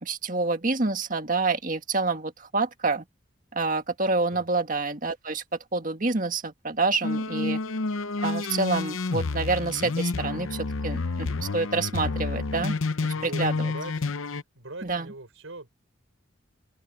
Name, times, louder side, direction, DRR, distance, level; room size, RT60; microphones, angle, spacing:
voice 1, 0.0-3.0 3.5-5.4 5.7-7.6 8.2-13.7 14.8-15.1, right 3 dB, 40° right, 1.8 m, -28 dB
sound 1, 7.0-14.4, left 3 dB, 80° left, 0.7 m, -29 dB
voice 2, 13.1-14.0 14.5-15.7, right 2 dB, 80° right, 4.7 m, -41 dB
open air
head